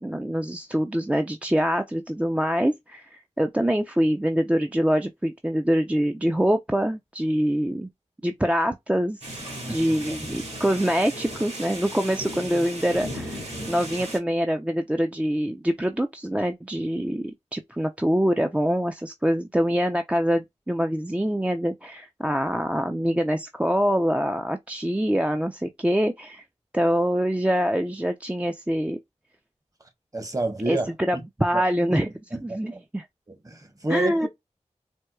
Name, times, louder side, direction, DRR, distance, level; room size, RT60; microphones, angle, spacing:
voice 1, 0.0-7.9 8.2-9.2 9.7-13.4 13.7-26.4 26.7-29.0 30.7-32.1 32.4-33.1 33.9-34.3, equal, 10° right, 0.5 m, -25 dB
sound 1, 9.2-14.2, right 1 dB, 60° right, 2.3 m, -36 dB
voice 2, 30.1-30.9 31.5-31.6 31.9-32.0 32.3-32.8 33.3-34.3, right 2 dB, 30° right, 1.1 m, -30 dB
4.3 x 2.3 x 2.2 m
cardioid pair, 45°, 12 cm